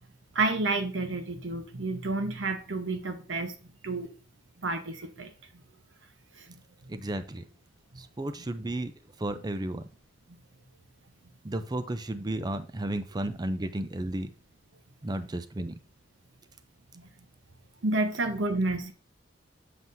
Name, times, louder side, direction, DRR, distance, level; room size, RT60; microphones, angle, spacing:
voice 1, 0.3-3.5 3.8-4.1 4.6-5.3 6.4-6.6 16.9-17.1 17.8-18.9, right 2 dB, 80° right, 1.0 m, -30 dB
voice 2, 6.9-7.4 8.0-8.9 9.2-9.9 11.4-14.3 15.0-15.8, right 1 dB, 20° right, 0.5 m, -33 dB
7.4 x 5.9 x 2.7 m
head